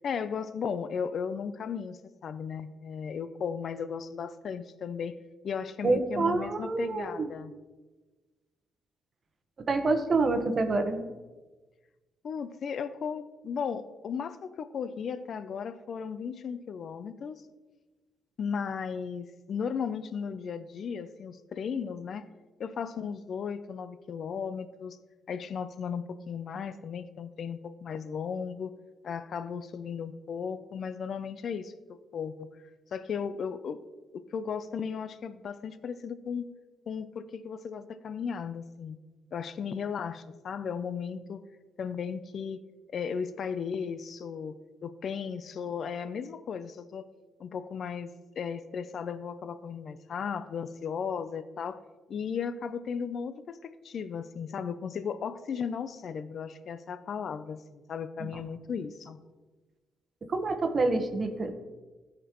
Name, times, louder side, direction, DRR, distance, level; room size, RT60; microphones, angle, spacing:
voice 1, 0.0-5.2 5.4-7.5 12.2-17.4 18.4-22.3 22.6-25.0 25.3-28.7 29.0-32.5 32.9-33.8 34.1-36.5 36.9-39.0 39.3-41.4 41.8-42.6 42.9-47.1 47.4-51.8 52.1-59.2, left 6 dB, 55° left, 13 dB, 0.5 m, -35 dB
voice 2, 5.8-7.3 9.7-11.0 58.2-58.3 60.3-61.5, right 3 dB, 40° right, 6 dB, 1.1 m, -27 dB
14.5 x 5.2 x 3.0 m, 1.2 s
cardioid pair, 90°, 0 cm